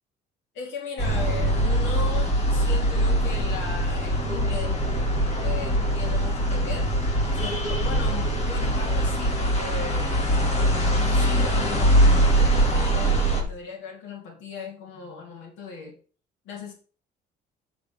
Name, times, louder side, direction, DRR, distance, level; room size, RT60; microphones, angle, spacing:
voice 1, 0.5-4.9 5.3-6.9 7.3-10.1 11.1-15.9 16.4-16.7, left 4 dB, 80° left, 0 dB, 3.3 m, -37 dB
sound 1, 1.0-13.4, right 1 dB, 35° left, 2.2 m, -22 dB
9.1 x 6.9 x 3.5 m, 0.38 s
cardioid pair, 165°, 19 cm